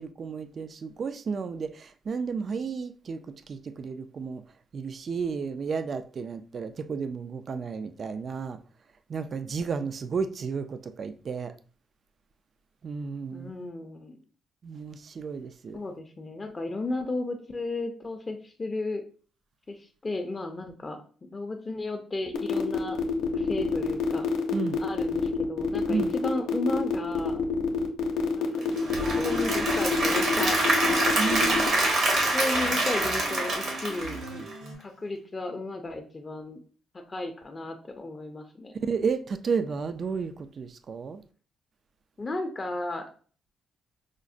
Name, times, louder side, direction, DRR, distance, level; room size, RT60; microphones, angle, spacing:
voice 1, 0.0-4.4 4.7-8.6 9.1-11.5 12.8-13.5 14.6-15.8 24.5-24.8 25.9-26.1 31.2-31.7 38.9-41.2, right 5 dB, 50° right, 0.3 m, -32 dB
voice 2, 13.3-14.2 15.7-19.0 19.7-23.0 23.3-24.3 24.8-27.4 28.3-28.7 29.2-31.2 32.1-34.5 34.8-36.6 37.1-38.7 42.2-43.0, left 2 dB, 30° left, 0.5 m, -34 dB
sound 1, 22.3-31.7, left 6 dB, 90° left, 0.6 m, -27 dB
Applause / Crowd, 28.6-34.7, right 2 dB, 65° right, 1.2 m, -26 dB
sound 2, 29.0-32.0 32.4-34.7, right 3 dB, 90° right, 0.9 m, -42 dB
4.9 x 2.1 x 2.5 m
cardioid pair, 90°, 0 cm